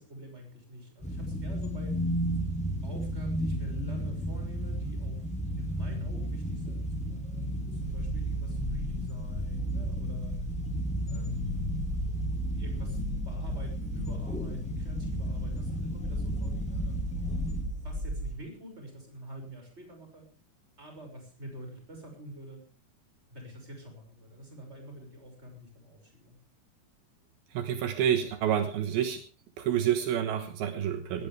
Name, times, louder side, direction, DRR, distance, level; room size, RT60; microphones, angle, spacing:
voice 1, 0.0-2.0 2.8-5.2 5.6-10.4 11.1-11.7 12.5-17.0 17.8-20.3 20.8-22.6 23.3-26.4, right 1 dB, 15° right, 3 dB, 6.3 m, -46 dB
sound 1, 1.0-17.6, equal, ahead, 2.9 m, -33 dB
sound 2, 7.7-18.3, equal, 30° right, 4.2 m, -37 dB
voice 2, 27.5-29.2 29.6-31.3, right 9 dB, 75° right, 8 dB, 3.2 m, -28 dB
19.0 x 17.0 x 3.4 m, 0.33 s
omnidirectional pair, 4.4 m